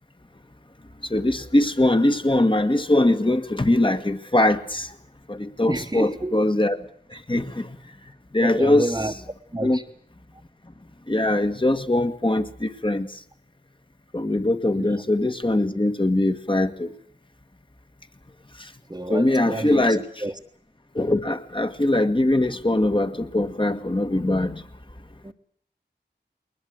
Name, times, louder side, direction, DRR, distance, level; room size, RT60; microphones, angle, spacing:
voice 1, 1.1-4.9 5.3-6.8 7.3-7.7 8.3-8.9 9.6-9.8 11.1-13.1 14.1-16.9 19.1-20.0 20.9-24.6, left 1 dB, 25° left, 1.8 m, -21 dB
voice 2, 5.7-6.3 8.4-9.1 9.5-9.8 14.8-15.0 18.9-20.4 25.2-25.3, right 1 dB, 20° right, 1.4 m, -29 dB
21.0 x 20.5 x 8.0 m
wide cardioid pair, 45°, 18 cm